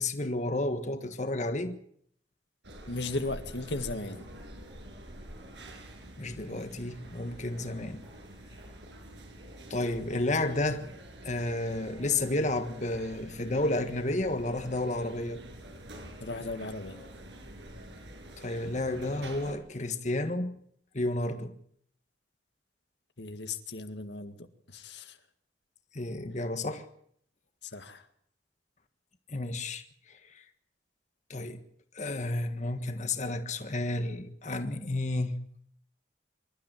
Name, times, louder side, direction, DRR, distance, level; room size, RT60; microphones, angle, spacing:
voice 1, 0.0-1.8 6.2-8.0 9.7-10.9 11.2-15.4 18.4-20.6 20.9-21.5 25.9-26.9 29.3-30.4 31.3-31.6 31.9-35.4, left 2 dB, 40° left, 1.5 m, -31 dB
sound 1, 2.6-19.5, right 1 dB, 85° right, 7.1 m, -47 dB
voice 2, 2.9-4.3 16.2-17.0 23.2-25.2 27.6-28.1, left 2 dB, 75° left, 1.9 m, -36 dB
26.0 x 13.0 x 9.1 m
head